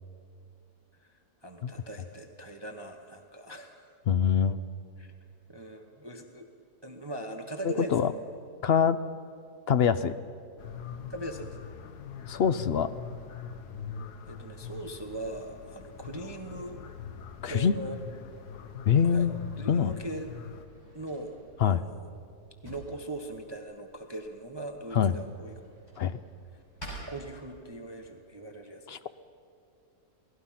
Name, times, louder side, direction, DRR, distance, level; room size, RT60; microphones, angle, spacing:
voice 1, 1.0-3.9 5.0-5.1 5.5-6.5 6.8-8.1 11.1-11.6 14.3-16.8 17.4-18.0 19.0-19.3 19.5-20.3 20.9-21.4 21.6-22.1 22.6-25.5 26.9-29.1, right 2 dB, 20° right, 4 dB, 1.0 m, -40 dB
voice 2, 4.1-4.6 7.9-8.1 8.6-9.0 9.7-10.1 12.3-12.9 17.4-17.7 18.9-19.3 19.7-19.9 21.6-21.8 24.9-25.1 26.0-26.2 28.9-29.1, left 7 dB, 60° left, 13 dB, 0.6 m, -24 dB
sound 1, 10.6-20.6, left 7 dB, 85° left, 1.6 m, -42 dB
Drawer open or close, 20.3-27.9, right 1 dB, 25° left, 6.9 m, -51 dB
28.0 x 19.0 x 5.8 m, 2.5 s
omnidirectional pair, 1.7 m